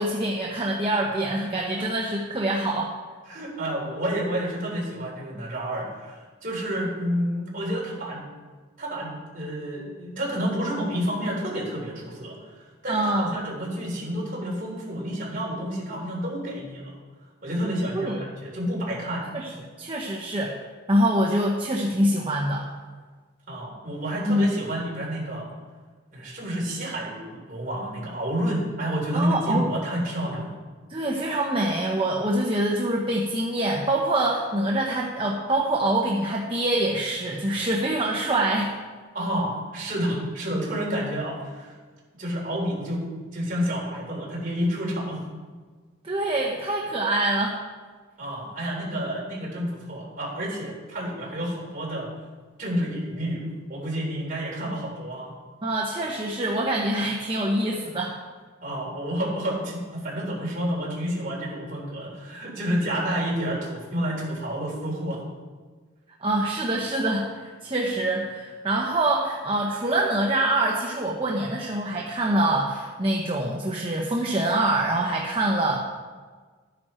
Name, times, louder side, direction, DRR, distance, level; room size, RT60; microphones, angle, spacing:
voice 1, 0.0-2.9 12.9-13.4 17.9-18.2 19.3-19.5 19.8-20.6 20.9-22.7 24.3-24.5 29.1-29.7 30.9-38.7 46.0-47.6 55.6-58.1 66.2-75.8, right 1 dB, 25° right, -2 dB, 1.1 m, -25 dB
voice 2, 3.3-8.2 8.8-12.4 12.8-16.9 17.4-19.3 23.5-25.5 26.1-30.5 39.1-41.8 42.2-45.2 48.2-52.1 52.6-55.3 58.6-65.2, equal, 45° right, -4 dB, 3.8 m, -29 dB
13.0 x 9.5 x 4.5 m, 1.5 s
head